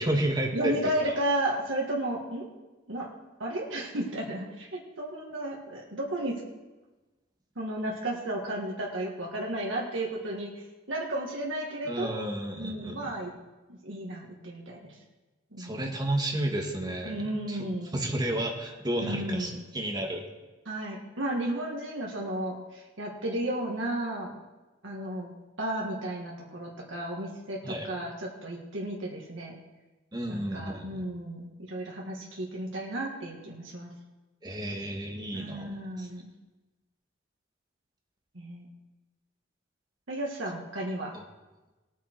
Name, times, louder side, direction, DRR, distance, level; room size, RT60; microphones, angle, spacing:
voice 1, 0.0-1.2 11.9-13.0 15.6-17.6 17.9-20.2 27.6-27.9 30.1-31.1 34.4-36.1 41.1-41.2, right 1 dB, 20° right, 1 dB, 1.6 m, -32 dB
voice 2, 0.5-2.5 2.9-3.1 3.4-6.4 7.5-10.5 10.9-12.2 12.5-13.3 13.7-14.9 15.5-15.9 17.0-18.0 19.0-19.6 20.6-24.3 24.8-25.3 25.6-29.6 30.3-33.9 35.3-36.3 38.3-38.7 40.1-41.1, right 1 dB, 75° right, -2 dB, 1.7 m, -33 dB
18.5 x 7.2 x 4.5 m, 1.2 s
head